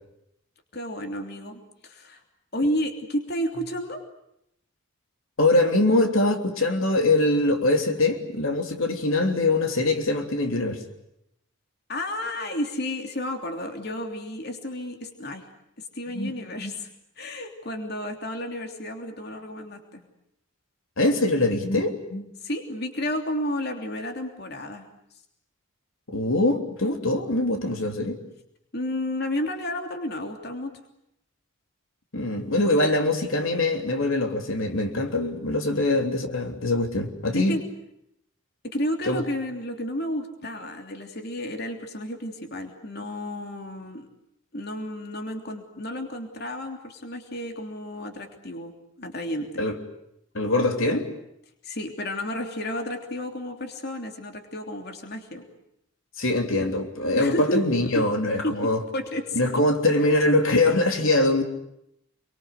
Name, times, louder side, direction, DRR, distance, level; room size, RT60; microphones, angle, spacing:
voice 1, 0.7-2.2 2.5-4.0 11.9-15.5 15.9-16.9 17.2-20.1 22.4-24.9 28.7-30.7 35.7-35.9 37.3-37.6 38.6-44.1 44.5-48.7 49.0-49.6 51.6-55.5 57.2-57.6 57.9-58.0 58.4-58.6 58.9-59.6, left 1 dB, 50° left, 4 dB, 3.1 m, -31 dB
voice 2, 5.4-10.8 16.1-16.3 16.6-16.7 21.0-22.3 26.1-28.2 32.1-37.6 39.0-39.2 49.6-49.8 50.3-51.1 56.2-58.8 59.3-61.4, left 2 dB, 75° left, 5 dB, 3.3 m, -23 dB
28.0 x 24.5 x 8.2 m, 0.77 s
head